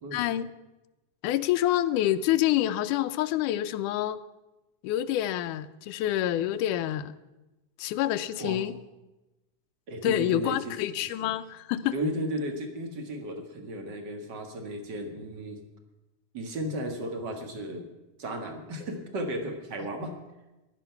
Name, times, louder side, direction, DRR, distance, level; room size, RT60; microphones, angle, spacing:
voice 1, 0.1-0.5 1.2-4.2 4.8-7.1 7.8-8.7 10.0-12.0, left 13 dB, 85° left, 12 dB, 2.1 m, -27 dB
voice 2, 9.9-10.7 11.0-11.3 11.9-15.6 16.3-17.9 18.2-20.2, right 1 dB, 45° right, 5 dB, 1.7 m, -34 dB
15.5 x 11.5 x 5.7 m, 1.0 s
omnidirectional pair, 3.6 m